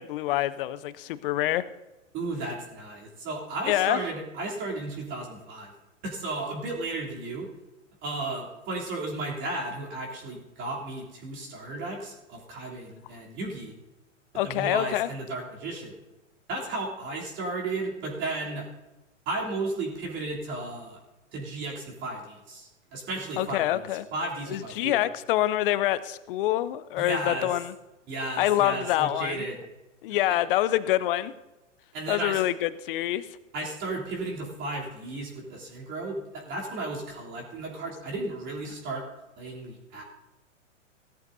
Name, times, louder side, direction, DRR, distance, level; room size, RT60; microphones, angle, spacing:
voice 1, 0.0-1.6 3.7-4.0 14.3-15.1 23.4-24.1 24.5-27.7 28.4-29.5 30.0-31.3 32.1-33.3, left 14 dB, 45° left, 16 dB, 0.7 m, -26 dB
voice 2, 2.1-5.7 6.0-7.5 8.0-13.7 14.4-16.0 16.5-18.7 19.2-21.0 21.3-25.0 27.0-27.5 28.1-29.6 31.9-32.4 33.5-39.0 39.4-40.0, right 2 dB, 30° right, -2 dB, 3.2 m, -34 dB
18.0 x 13.5 x 2.7 m, 1.1 s
figure-of-eight pair, 110°, 39 cm